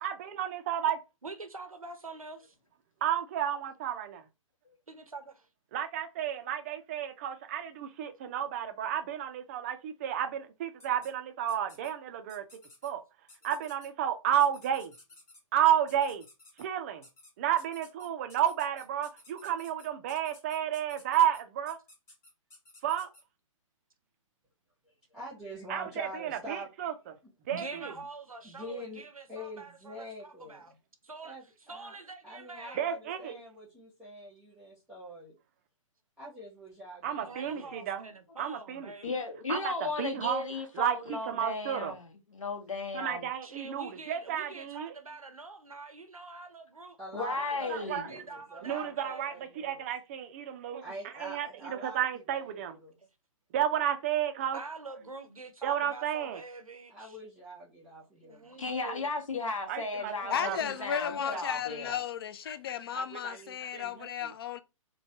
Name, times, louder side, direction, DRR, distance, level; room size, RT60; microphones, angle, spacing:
voice 1, 0.0-1.0 3.0-4.2 5.7-12.4 12.8-13.0 13.4-14.9 15.5-16.2 16.6-17.0 17.4-21.8 22.8-23.1 25.7-26.9 27.5-27.9 32.8-33.3 37.0-38.0 38.4-38.9 39.5-40.4 40.7-41.9 42.9-44.9 47.7-48.1 48.6-50.8 51.2-52.8 53.5-54.6 55.6-56.4 59.7-60.6 61.3-61.4 61.9-62.0 62.9-64.3, right 10 dB, 25° right, 0.4 m, -32 dB
voice 2, 1.2-2.5 4.9-5.5 27.5-30.7 31.0-33.0 37.2-39.3 43.4-47.0 47.3-49.4 53.0-53.1 54.5-57.2 58.2-59.1, right 3 dB, 85° right, 0.6 m, -46 dB
sound 1, 10.8-11.1 11.5-11.9 12.3-12.9 13.3-13.9 14.4-15.4 15.9-16.6 17.0-17.3 17.6-23.2, left 2 dB, 15° left, 1.1 m, -55 dB
voice 3, 25.1-26.7 27.5-28.0 28.4-29.0 29.3-30.8 31.2-32.0 32.2-35.3 36.2-37.7 47.0-49.8 50.8-52.9 56.9-58.6, equal, 5° right, 0.8 m, -45 dB
voice 4, 39.0-43.3 47.1-48.2 58.6-61.9, left 3 dB, 70° left, 0.9 m, -35 dB
voice 5, 60.3-64.6, left 8 dB, 45° left, 0.4 m, -34 dB
3.1 x 2.2 x 2.7 m
figure-of-eight pair, 125°, 17 cm